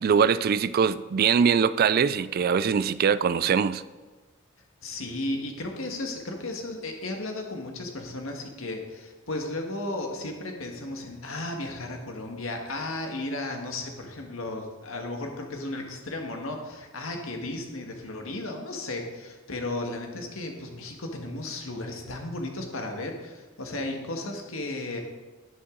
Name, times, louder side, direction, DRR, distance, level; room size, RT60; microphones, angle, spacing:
voice 1, 0.0-3.8, right 6 dB, 45° right, 0.3 m, -22 dB
voice 2, 4.8-25.0, left 2 dB, 75° left, 1.7 m, -34 dB
10.5 x 10.0 x 3.9 m
head